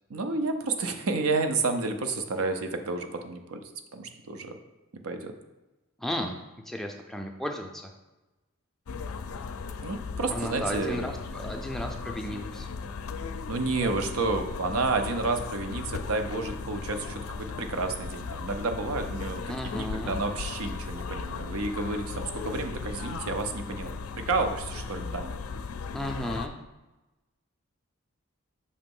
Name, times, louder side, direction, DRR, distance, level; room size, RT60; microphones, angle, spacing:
voice 1, 0.1-3.6 3.9-4.6 4.9-5.3 9.8-11.1 13.5-25.4, right 3 dB, 85° right, 6 dB, 0.6 m, -30 dB
voice 2, 6.0-6.3 6.7-7.9 10.3-12.7 19.5-20.2 25.9-26.5, equal, ahead, 2 dB, 0.4 m, -34 dB
sound 1, 8.9-26.5, left 4 dB, 90° left, 0.4 m, -37 dB
6.5 x 3.0 x 5.3 m, 1.1 s
head